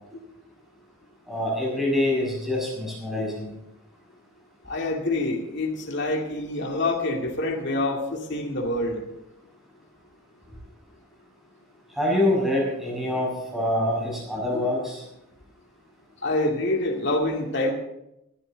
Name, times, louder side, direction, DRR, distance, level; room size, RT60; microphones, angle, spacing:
voice 1, 1.3-3.5 12.0-15.0, left 1 dB, ahead, -3 dB, 6.3 m, -25 dB
voice 2, 4.7-9.0 16.2-17.7, left 2 dB, 55° left, 0 dB, 2.3 m, -26 dB
20.5 x 11.0 x 4.0 m, 0.85 s
head